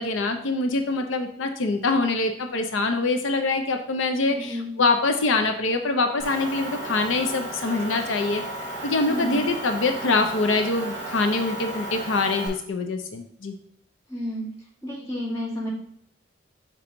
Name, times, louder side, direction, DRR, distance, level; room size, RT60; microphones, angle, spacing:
voice 1, 0.0-8.4 8.8-13.5, left 3 dB, 85° left, 6 dB, 0.6 m, -24 dB
voice 2, 4.3-4.7 9.1-9.4 14.1-14.5 14.8-15.7, equal, 15° left, -5 dB, 1.9 m, -31 dB
Motor vehicle (road) / Engine, 6.2-12.5, right 1 dB, 15° right, 2.5 m, -34 dB
6.0 x 4.8 x 3.8 m, 0.71 s
head